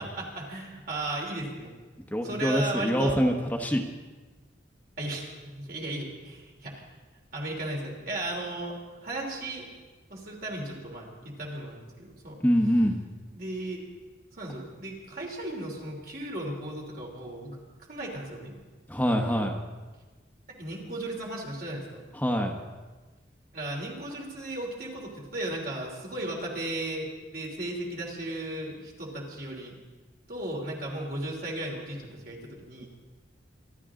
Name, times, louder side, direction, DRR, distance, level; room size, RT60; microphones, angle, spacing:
voice 1, 0.0-1.7 2.2-3.2 5.0-6.8 7.3-9.6 10.1-12.4 13.3-13.8 14.3-17.6 17.9-18.5 20.5-22.0 23.5-29.7 30.3-32.9, right 1 dB, 50° right, -1 dB, 3.2 m, -35 dB
voice 2, 2.1-3.8 12.4-13.0 18.9-19.6 22.2-22.5, equal, 10° left, 2 dB, 1.0 m, -25 dB
24.5 x 12.5 x 3.8 m, 1.3 s
head